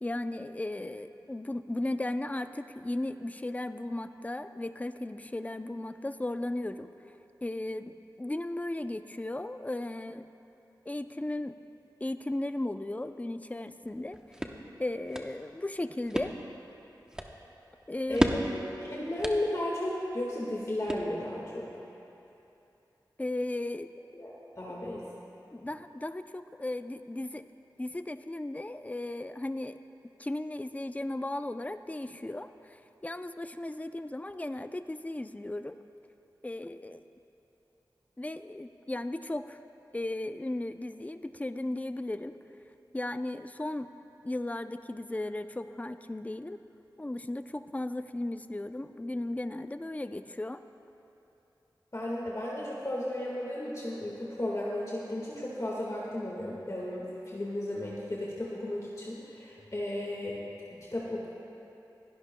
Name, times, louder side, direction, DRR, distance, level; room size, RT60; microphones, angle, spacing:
voice 1, 0.0-6.9 7.4-10.2 10.9-11.6 12.0-14.2 14.8-16.3 17.9-18.5 23.2-23.9 25.5-27.4 27.8-29.8 30.2-32.8 33.0-35.8 36.4-37.0 38.2-39.6 39.9-42.3 42.9-43.9 44.2-46.6 47.0-50.6, left 1 dB, 20° left, 10 dB, 0.5 m, -36 dB
sound 1, 13.9-21.5, equal, 10° right, 0.9 m, -36 dB
voice 2, 18.1-21.7 24.1-25.0 51.9-60.4 60.7-61.3, left 1 dB, 40° left, -5 dB, 1.7 m, -34 dB
27.0 x 11.0 x 2.2 m, 3.0 s
wide cardioid pair, 50°, 8 cm